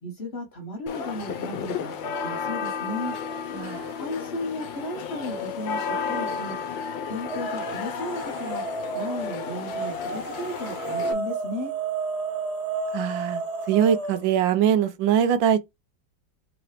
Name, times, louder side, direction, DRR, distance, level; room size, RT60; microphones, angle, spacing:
voice 1, 0.0-1.9 2.2-3.1 4.0-6.5 7.1-8.6 8.9-11.7, left 1 dB, 40° left, 1.2 m, -34 dB
sound 1, 0.9-11.1, left 6 dB, 80° left, 1.4 m, -33 dB
sound 2, 3.7-4.3 4.6-6.4 7.2-14.4, right 3 dB, 35° right, 1.9 m, -33 dB
voice 2, 12.9-13.4 13.7-15.6, right 9 dB, 85° right, 1.3 m, -22 dB
3.8 x 3.0 x 3.1 m
omnidirectional pair, 2.0 m